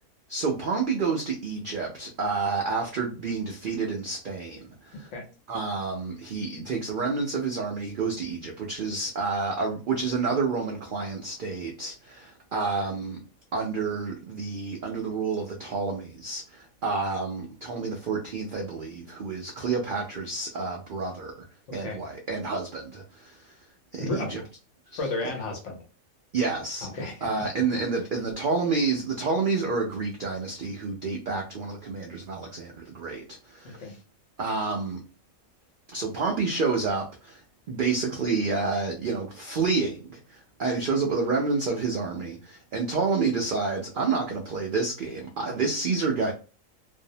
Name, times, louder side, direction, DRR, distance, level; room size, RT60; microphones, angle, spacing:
voice 1, 0.3-5.1 5.5-13.2 13.5-21.4 21.7-23.5 23.9-24.4 24.9-25.0 26.3-26.9 27.2-33.9 34.4-35.0 35.9-37.4 37.7-46.3, right 4 dB, 90° right, 0.4 m, -29 dB
voice 2, 24.0-24.4 25.0-25.8 26.8-27.3 27.7-27.8 33.6-33.9, left 2 dB, 60° left, 1.0 m, -33 dB
2.6 x 2.0 x 2.6 m
omnidirectional pair, 1.4 m